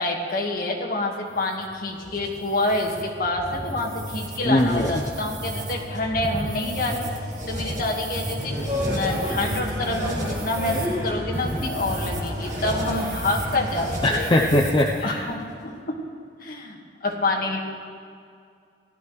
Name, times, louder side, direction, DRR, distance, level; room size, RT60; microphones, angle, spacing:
voice 1, 0.0-7.1 7.5-14.3 15.0-17.6, left 2 dB, 55° left, 0 dB, 1.5 m, -27 dB
sound 1, 1.3-15.1, right 1 dB, 45° right, 2.0 m, -32 dB
voice 2, 4.4-5.0 14.0-15.2, left 1 dB, 30° left, -1 dB, 0.6 m, -21 dB
sound 2, 8.4-14.1, equal, 15° right, 3.2 m, -31 dB
16.5 x 12.5 x 3.1 m, 2.3 s
head